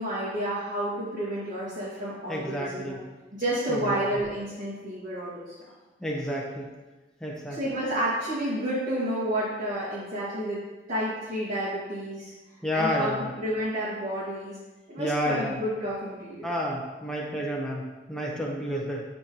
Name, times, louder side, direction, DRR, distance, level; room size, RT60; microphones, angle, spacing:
voice 1, 0.0-3.0 3.3-5.5 7.5-10.6 10.9-12.3 12.7-14.6 14.9-16.5, right 1 dB, 50° right, -11 dB, 2.2 m, -30 dB
voice 2, 2.3-3.0 3.7-4.0 6.0-6.7 7.2-7.6 12.6-13.3 15.0-15.6 16.4-19.0, equal, 5° left, -4 dB, 1.2 m, -30 dB
12.0 x 4.3 x 3.1 m, 1.2 s
head